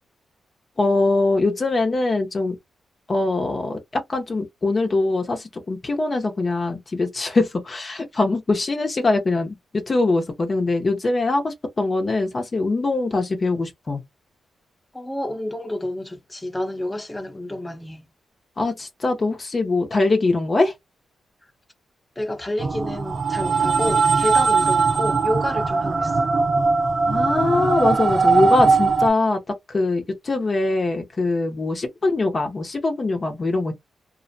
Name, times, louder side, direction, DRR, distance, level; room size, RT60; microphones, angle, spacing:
voice 1, 0.8-2.6 3.1-14.0 18.6-20.7 27.1-29.4 29.7-33.7, left 3 dB, 45° left, 0.6 m, -22 dB
voice 2, 14.9-18.1 22.2-26.3, left 1 dB, 15° left, 0.8 m, -29 dB
sound 1, 22.6-29.1, right 4 dB, 45° right, 0.5 m, -20 dB
2.4 x 2.0 x 2.6 m
supercardioid pair, 50°, 0 cm